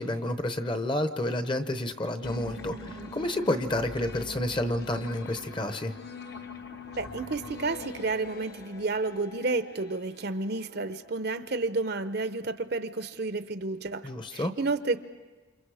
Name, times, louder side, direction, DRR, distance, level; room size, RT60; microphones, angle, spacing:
voice 1, 0.0-5.9 14.0-14.5, left 1 dB, 25° left, 9 dB, 0.9 m, -30 dB
sound 1, 2.2-11.2, left 2 dB, 50° left, 1.3 m, -43 dB
voice 2, 7.0-15.0, right 3 dB, 50° right, 11 dB, 0.8 m, -31 dB
29.0 x 27.5 x 4.9 m, 1.3 s
head